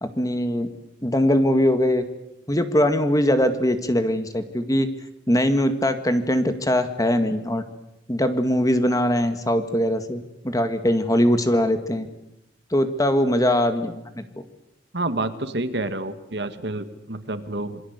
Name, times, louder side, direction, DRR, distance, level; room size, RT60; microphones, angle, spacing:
voice 1, 0.0-0.7 1.0-2.0 2.5-4.9 5.3-7.6 8.1-12.1 12.7-14.2, equal, 20° left, 8 dB, 1.9 m, -21 dB
voice 2, 14.9-17.8, right 2 dB, 65° right, 10 dB, 1.8 m, -28 dB
27.5 x 22.0 x 8.2 m, 0.87 s
head